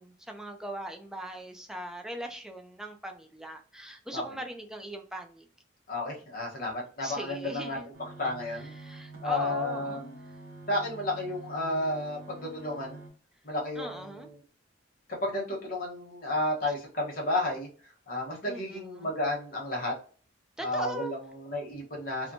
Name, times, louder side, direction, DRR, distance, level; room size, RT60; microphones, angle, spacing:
voice 1, 0.0-5.4 7.0-7.9 8.5-10.2 13.8-14.3 18.5-19.1 20.6-21.1, right 1 dB, 5° right, 3 dB, 0.4 m, -40 dB
voice 2, 5.9-7.8 8.2-8.7 9.2-10.1 10.7-13.0 13.4-14.4 15.2-19.9 20.6-22.3, left 1 dB, 45° left, -1 dB, 1.1 m, -32 dB
sound 1, 7.9-13.1, right 2 dB, 90° right, 1.0 m, -46 dB
2.9 x 2.2 x 2.6 m, 0.40 s
head